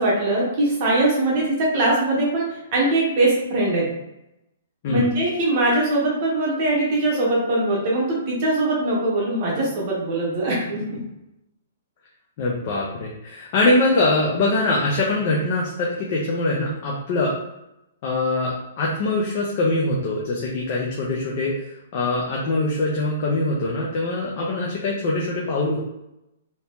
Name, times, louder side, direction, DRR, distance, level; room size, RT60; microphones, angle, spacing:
voice 1, 0.0-3.9 4.9-11.0, right 2 dB, 25° right, -4 dB, 1.0 m, -21 dB
voice 2, 12.4-17.3 18.0-21.6 21.9-25.8, left 2 dB, 30° left, -3 dB, 0.5 m, -23 dB
2.9 x 2.8 x 3.4 m, 0.89 s
hypercardioid pair, 180°, 0 cm